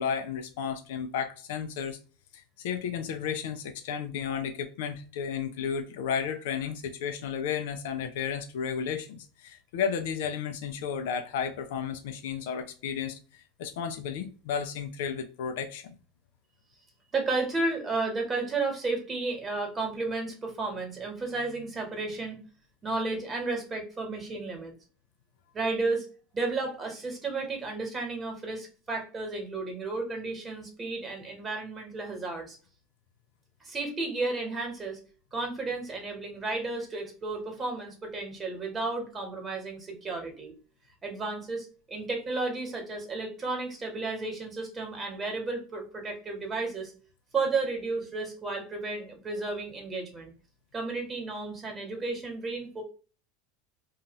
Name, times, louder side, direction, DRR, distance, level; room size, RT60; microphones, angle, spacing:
voice 1, 0.0-2.0 2.3-13.2 13.6-15.8, left 7 dB, 75° left, 0.5 m, -33 dB
voice 2, 17.1-22.4 22.8-24.7 25.5-26.0 26.3-32.6 33.6-35.0 35.3-40.5 41.0-46.9 47.3-50.3 50.7-52.8, right 3 dB, 25° right, 1.3 m, -33 dB
2.6 x 2.3 x 2.9 m
hypercardioid pair, 100°, 0 cm